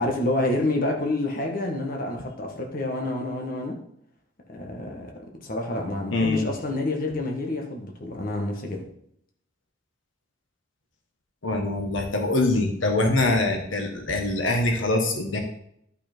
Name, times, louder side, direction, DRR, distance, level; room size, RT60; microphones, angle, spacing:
voice 1, 0.0-3.8 4.5-8.8, left 2 dB, 45° left, 1 dB, 1.5 m, -28 dB
voice 2, 6.1-6.5 11.4-15.4, left 2 dB, 80° left, 3 dB, 1.5 m, -24 dB
11.5 x 5.7 x 4.5 m, 0.71 s
head